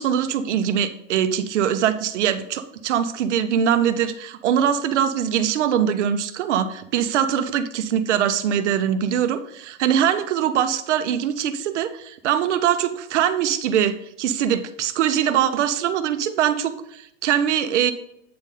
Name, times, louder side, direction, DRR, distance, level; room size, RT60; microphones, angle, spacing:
voice 1, 0.0-17.9, right 9 dB, 70° right, 11 dB, 0.8 m, -22 dB
8.7 x 4.1 x 3.8 m, 0.77 s
hypercardioid pair, 135°, 37 cm